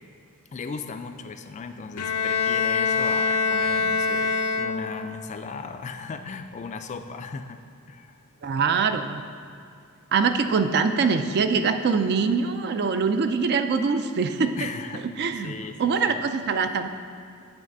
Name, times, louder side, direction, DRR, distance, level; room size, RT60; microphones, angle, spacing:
voice 1, 0.5-7.6 7.9-8.2 14.6-15.0 15.4-16.2, left 4 dB, 30° left, 8 dB, 0.3 m, -37 dB
Bowed string instrument, 2.0-5.2, left 5 dB, 90° left, 0.5 m, -24 dB
voice 2, 8.4-9.2 10.1-14.5 14.9-15.5 15.8-16.9, right 5 dB, 50° right, 9 dB, 0.4 m, -23 dB
8.8 x 3.4 x 6.5 m, 2.4 s
head